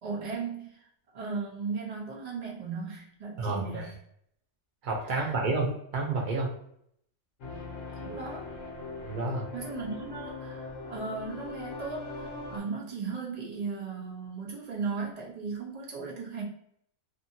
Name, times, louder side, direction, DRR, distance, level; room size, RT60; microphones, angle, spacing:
voice 1, 0.0-0.8 1.1-3.9 5.0-5.5 7.4-7.6 8.0-8.5 9.5-16.4, right 4 dB, 40° right, -3 dB, 0.6 m, -37 dB
voice 2, 3.4-3.9 4.8-6.5 9.0-9.5, right 3 dB, 85° right, -1 dB, 0.4 m, -30 dB
sound 1, 7.4-12.6, left 3 dB, 65° left, 1.0 m, -40 dB
2.6 x 2.6 x 2.7 m, 0.70 s
omnidirectional pair, 1.5 m